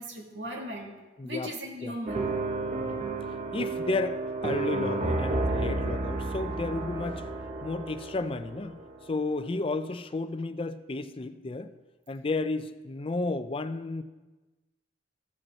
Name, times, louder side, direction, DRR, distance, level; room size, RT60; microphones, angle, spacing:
voice 1, 0.0-2.3, equal, 70° right, 0 dB, 2.1 m, -38 dB
voice 2, 1.2-1.5 1.8-2.0 2.8-3.1 3.5-7.2 7.6-8.8 9.1-11.7 12.1-14.0, left 3 dB, 30° left, 11 dB, 0.4 m, -32 dB
sound 1, 2.1-9.2, right 2 dB, 40° right, 1.0 m, -31 dB
15.0 x 5.3 x 4.3 m, 1.2 s
head